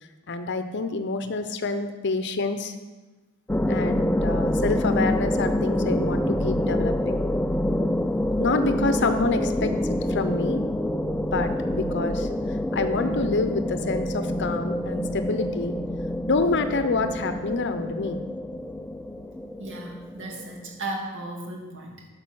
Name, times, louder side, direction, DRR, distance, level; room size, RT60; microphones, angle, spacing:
voice 1, 0.3-2.7 3.7-7.3 8.4-10.6 11.3-12.3 12.7-15.8 16.3-18.2, left 3 dB, 55° left, 9 dB, 0.8 m, -27 dB
sound 1, 3.5-20.6, left 1 dB, 5° left, 0.4 m, -26 dB
voice 2, 19.6-22.1, right 2 dB, 60° right, 0 dB, 2.2 m, -35 dB
10.5 x 6.7 x 6.3 m, 1.2 s
head